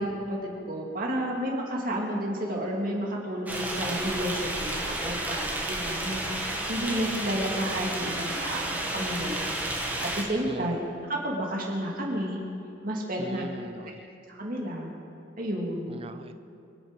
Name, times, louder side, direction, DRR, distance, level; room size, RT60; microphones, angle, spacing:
voice 1, 0.0-10.8 11.1-12.4 12.8-13.4 14.3-14.9 15.4-16.0, equal, 50° right, -1 dB, 2.3 m, -31 dB
sound 1, 3.5-10.2, right 1 dB, 10° right, 1.9 m, -31 dB
voice 2, 10.5-10.8 13.2-14.0 15.9-16.3, right 2 dB, 30° right, 9 dB, 0.5 m, -40 dB
26.0 x 9.9 x 5.2 m, 2.9 s
head